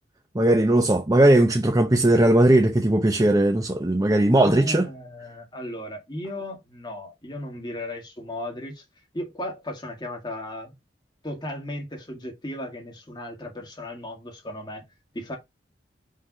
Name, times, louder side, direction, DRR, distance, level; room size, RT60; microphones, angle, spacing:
voice 1, 0.3-4.9, right 1 dB, 20° right, 0.6 m, -18 dB
voice 2, 4.4-8.8 9.1-10.7 11.2-14.8 15.1-15.4, left 1 dB, 25° left, 2.0 m, -35 dB
5.6 x 3.4 x 5.3 m
head